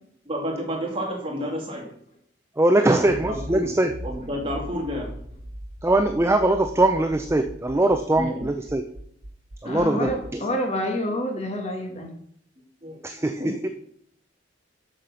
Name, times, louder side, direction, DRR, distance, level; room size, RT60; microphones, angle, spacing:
voice 1, 0.3-1.9 2.9-3.7 4.0-5.1 8.2-8.5 9.7-10.1 12.8-13.5, equal, 30° right, -1 dB, 2.7 m, -30 dB
voice 2, 2.6-3.9 5.8-8.8 9.6-10.4 13.0-13.7, right 2 dB, 15° right, 7 dB, 0.5 m, -22 dB
Accelerating revving vroom, 3.0-10.3, equal, 55° right, 1.1 m, -40 dB
voice 3, 9.6-12.1, equal, 35° left, 2 dB, 1.7 m, -28 dB
7.6 x 6.6 x 5.8 m, 0.67 s
head